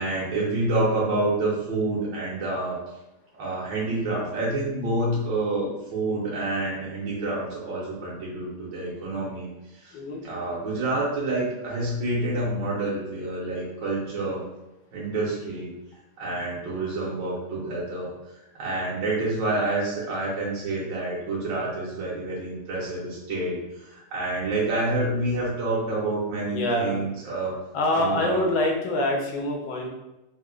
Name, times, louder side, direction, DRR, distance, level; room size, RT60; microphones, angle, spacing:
voice 1, 0.0-2.8 3.4-9.5 9.7-9.9 10.2-14.4 14.9-15.7 16.2-18.1 18.5-27.6 27.9-28.5, right 2 dB, 70° right, -6 dB, 1.4 m, -28 dB
voice 2, 9.9-10.2 26.5-27.0 27.7-29.9, left 1 dB, 70° left, 0 dB, 1.3 m, -25 dB
4.2 x 2.1 x 2.4 m, 0.93 s
omnidirectional pair, 2.2 m